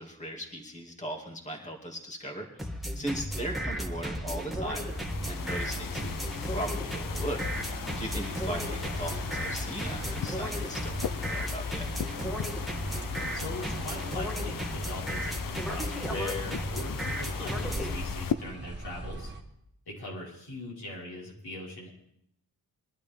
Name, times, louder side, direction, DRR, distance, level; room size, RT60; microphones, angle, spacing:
voice 1, 0.0-2.6 3.0-4.9 5.2-7.4 8.0-11.9, right 1 dB, 20° left, 0 dB, 2.4 m, -38 dB
sound 1, 2.6-17.9, equal, ahead, 1.7 m, -35 dB
voice 2, 2.9-3.2 13.3-19.3 19.9-21.9, left 1 dB, 90° left, -5 dB, 5.3 m, -40 dB
sound 2, 3.4-19.4, right 2 dB, 30° right, 1.8 m, -43 dB
sound 3, 4.5-18.3, left 8 dB, 60° left, 0.6 m, -37 dB
22.5 x 11.5 x 3.6 m, 0.74 s
wide cardioid pair, 90°, 37 cm